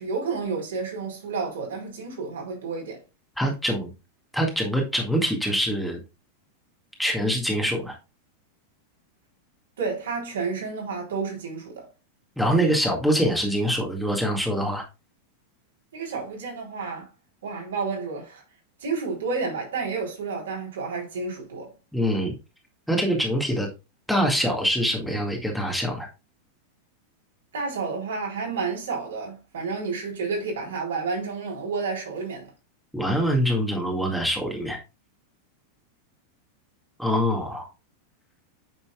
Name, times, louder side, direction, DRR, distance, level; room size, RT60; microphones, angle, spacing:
voice 1, 0.0-3.0 9.8-11.9 15.9-17.1 17.4-18.4 18.8-21.7 27.5-32.5, right 4 dB, 65° right, 3.8 m, -30 dB
voice 2, 3.4-3.9 4.3-6.0 7.0-8.0 12.4-14.8 21.9-22.3 22.9-23.7 24.1-26.1 32.9-34.8 37.0-37.7, equal, ahead, 2.0 m, -24 dB
9.1 x 6.7 x 2.4 m
figure-of-eight pair, 90°, 0 cm